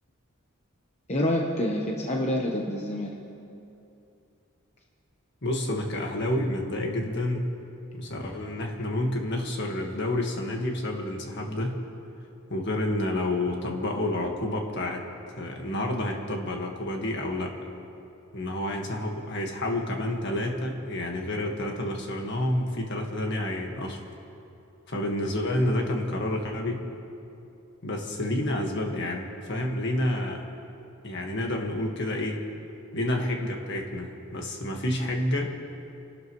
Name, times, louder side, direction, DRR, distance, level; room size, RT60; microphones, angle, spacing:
voice 1, 1.1-3.1, left 1 dB, 30° left, -1 dB, 1.1 m, -27 dB
voice 2, 5.4-7.5 7.9-11.8 12.5-15.1 15.4-17.6 18.3-24.0 24.9-26.8 27.8-30.5 31.0-32.4 32.9-35.5, left 1 dB, 55° left, 1 dB, 1.8 m, -29 dB
28.5 x 12.5 x 3.2 m, 2.7 s
head